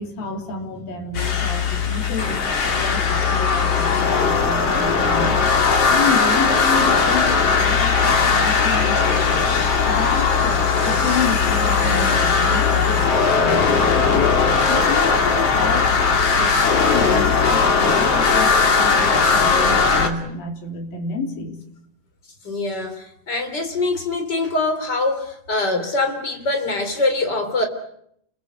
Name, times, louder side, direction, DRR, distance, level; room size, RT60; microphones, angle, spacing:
voice 1, 0.0-5.4 5.9-9.4 9.9-13.7 14.1-15.9 16.3-21.6, left 4 dB, 90° left, 3 dB, 5.1 m, -30 dB
sound 1, 1.1-20.1, left 5 dB, 45° left, 3.4 m, -18 dB
voice 2, 22.4-27.7, left 2 dB, 30° left, 6 dB, 4.1 m, -23 dB
30.0 x 21.0 x 8.3 m, 0.72 s
omnidirectional pair, 4.0 m